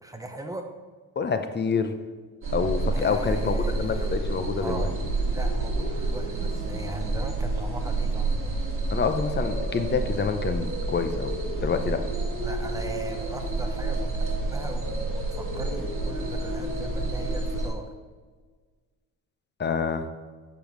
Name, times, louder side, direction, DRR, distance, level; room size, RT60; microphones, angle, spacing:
voice 1, 0.0-0.7 2.9-4.2 4.6-5.0 5.3-8.6 12.4-17.9, right 2 dB, 10° right, 5 dB, 0.8 m, -38 dB
voice 2, 1.2-1.9 2.5-4.9 8.9-11.3 11.6-12.0 19.6-20.1, left 5 dB, 30° left, 8 dB, 0.7 m, -27 dB
sound 1, 2.4-17.7, right 2 dB, 35° right, 2.0 m, -29 dB
7.0 x 7.0 x 3.1 m, 1.5 s
cardioid pair, 95°, 35 cm